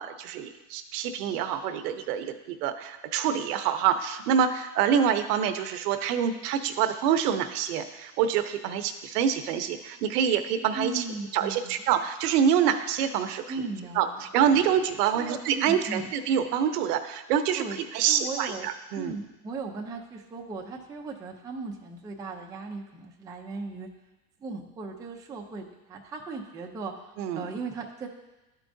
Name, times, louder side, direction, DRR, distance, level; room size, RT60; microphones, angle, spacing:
voice 1, 0.0-11.0 11.3-13.4 14.0-17.6 17.9-19.1 27.2-27.5, right 8 dB, 80° right, 9 dB, 0.8 m, -26 dB
voice 2, 10.7-11.8 13.5-14.2 15.1-16.1 17.6-17.8 18.1-18.7 19.0-23.9 24.4-28.1, right 4 dB, 10° right, 0 dB, 0.4 m, -37 dB
11.5 x 4.6 x 2.6 m, 1.0 s
supercardioid pair, 130°, 46 cm